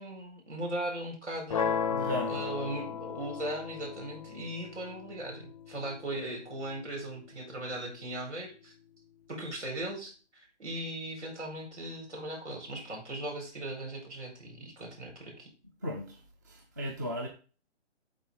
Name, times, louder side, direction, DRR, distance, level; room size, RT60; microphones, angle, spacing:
voice 1, 0.0-1.8 2.3-8.7 9.3-15.5, right 1 dB, 75° right, 1 dB, 4.7 m, -38 dB
sound 1, 1.5-7.5, left 6 dB, 30° left, 0.5 m, -36 dB
voice 2, 1.9-2.4 15.8-16.2 16.5-17.3, left 1 dB, 15° right, 3 dB, 0.5 m, -35 dB
12.0 x 4.2 x 3.7 m, 0.36 s
hypercardioid pair, 160°, 35 cm